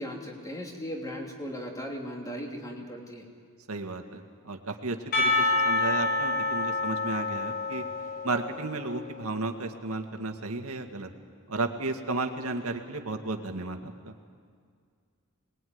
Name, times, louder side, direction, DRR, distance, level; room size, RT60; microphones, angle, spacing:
voice 1, 0.0-3.3, equal, 15° left, 1 dB, 3.2 m, -37 dB
voice 2, 3.7-7.8 8.2-11.1 11.5-14.1, right 3 dB, 80° right, 5 dB, 2.0 m, -33 dB
Percussion, 5.1-9.0, left 3 dB, 45° left, 5.5 m, -28 dB
24.0 x 20.5 x 9.6 m, 2.1 s
head